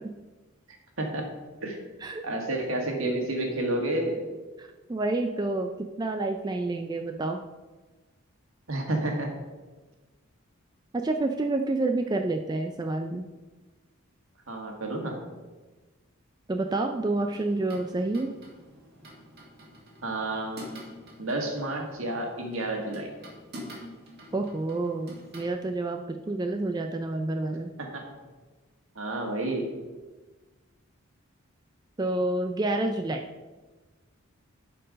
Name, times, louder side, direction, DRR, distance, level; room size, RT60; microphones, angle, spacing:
voice 1, 2.2-4.2 8.7-9.3 14.5-15.2 20.0-20.6 21.2-23.1 27.9-28.0 29.0-29.6, right 1 dB, 70° right, 1 dB, 1.7 m, -30 dB
voice 2, 4.6-7.4 10.9-13.3 16.5-18.3 24.3-27.7 32.0-33.2, right 2 dB, 20° right, 4 dB, 0.3 m, -29 dB
sound 1, 17.1-25.5, equal, 45° right, 2.0 m, -47 dB
11.5 x 4.6 x 5.1 m, 1.3 s
head